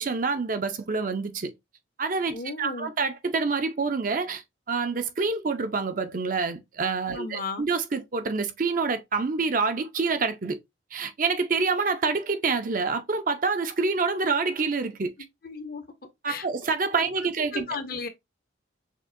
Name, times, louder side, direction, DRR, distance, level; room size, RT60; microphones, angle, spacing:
voice 1, 0.0-1.5 2.0-4.4 4.7-10.6 10.9-15.1 16.2-17.7, right 4 dB, 45° right, 0.6 m, -27 dB
voice 2, 2.3-2.9 7.1-7.6 15.4-15.8 16.3-16.5 17.5-18.1, left 4 dB, 50° left, 0.7 m, -34 dB
6.3 x 2.5 x 2.5 m
head